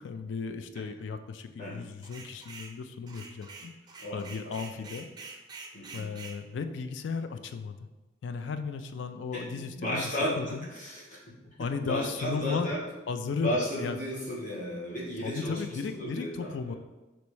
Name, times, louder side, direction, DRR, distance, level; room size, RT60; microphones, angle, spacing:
voice 1, 0.0-3.7 4.1-5.1 5.9-7.8 8.2-10.7 11.6-12.7 13.1-14.0 15.2-16.8, left 5 dB, 70° left, 9 dB, 0.3 m, -35 dB
sound 1, 2.0-2.8 3.1-6.4, right 4 dB, 20° right, 0.4 m, -46 dB
voice 2, 4.0-4.9 5.7-6.0 9.3-11.2 11.8-12.8 13.4-16.8, equal, 45° left, -5 dB, 1.2 m, -34 dB
3.1 x 3.0 x 4.6 m, 1.1 s
head